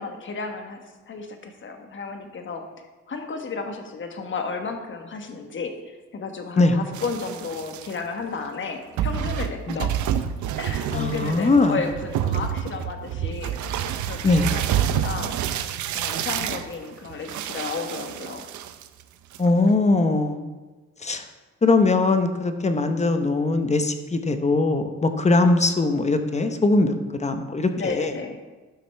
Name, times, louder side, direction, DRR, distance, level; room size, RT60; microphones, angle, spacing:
voice 1, 0.0-2.6 3.1-10.0 10.6-15.3 15.9-18.4 27.8-28.4, left 4 dB, 40° left, 5 dB, 1.2 m, -33 dB
sound 1, 6.9-7.9 8.6-8.7 9.0-19.0 19.3-19.7, right 9 dB, 75° right, 0.6 m, -28 dB
voice 2, 10.9-11.8 14.2-14.5 19.4-20.5 21.0-21.3 21.6-26.9 27.2-28.1, left 3 dB, 20° left, 7 dB, 0.8 m, -21 dB
12.0 x 5.9 x 3.4 m, 1.2 s
cardioid pair, 90°, 30 cm